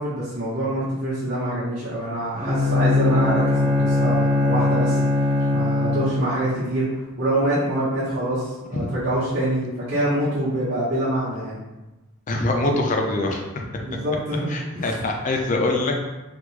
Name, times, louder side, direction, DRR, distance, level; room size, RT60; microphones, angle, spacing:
voice 1, 0.0-5.0 5.5-11.6 13.8-14.9, right 1 dB, 50° right, -10 dB, 0.9 m, -25 dB
Bowed string instrument, 2.3-6.4, left 2 dB, 25° right, 0.5 m, -21 dB
voice 2, 12.3-13.6 14.5-16.1, left 2 dB, 35° left, 2 dB, 0.4 m, -24 dB
3.4 x 2.1 x 3.1 m, 1.1 s
head